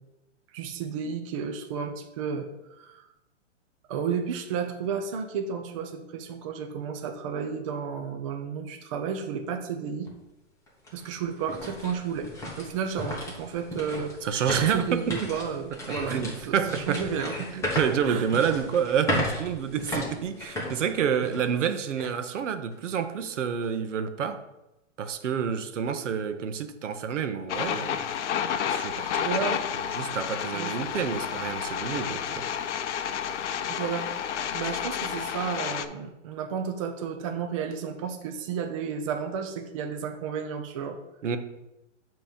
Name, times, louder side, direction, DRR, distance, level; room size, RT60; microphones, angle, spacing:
voice 1, 0.5-3.0 3.9-10.1 10.9-12.3 12.6-14.2 14.7-16.2 16.5-17.5 18.0-18.3 29.2-29.6 30.5-30.8 33.7-34.1 34.5-41.0, right 6 dB, 30° right, 5 dB, 0.4 m, -32 dB
sound 1, 10.1-10.2 10.7-21.6 22.0-22.1 22.7-23.0, left 1 dB, 10° left, 1.1 m, -35 dB
voice 2, 14.2-15.1 16.1-17.0 17.5-24.4 25.0-28.0 28.7-29.3 29.9-32.4 41.2-41.4, right 7 dB, 70° right, 9 dB, 0.8 m, -28 dB
sound 2, 27.5-35.9, left 8 dB, 65° left, 0.6 m, -30 dB
7.0 x 3.0 x 5.1 m, 0.93 s
hypercardioid pair, 140°, 38 cm